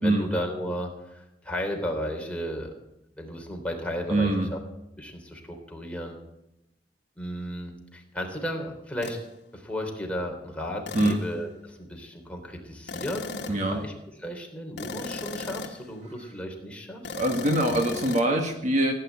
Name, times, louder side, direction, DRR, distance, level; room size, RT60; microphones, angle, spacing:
voice 1, 0.0-2.7 3.2-4.6 5.0-6.2 7.2-9.2 9.5-13.9 14.2-17.2, equal, 5° left, 1 dB, 3.3 m, -34 dB
voice 2, 4.1-4.5 10.9-11.2 13.5-13.8 17.1-18.9, right 1 dB, 40° right, 3 dB, 1.7 m, -24 dB
sound 1, 9.0-9.2 10.9-11.3 12.9-13.7 14.8-15.9 17.0-18.3, left 4 dB, 70° left, 1.4 m, -36 dB
17.0 x 9.7 x 8.3 m, 0.88 s
head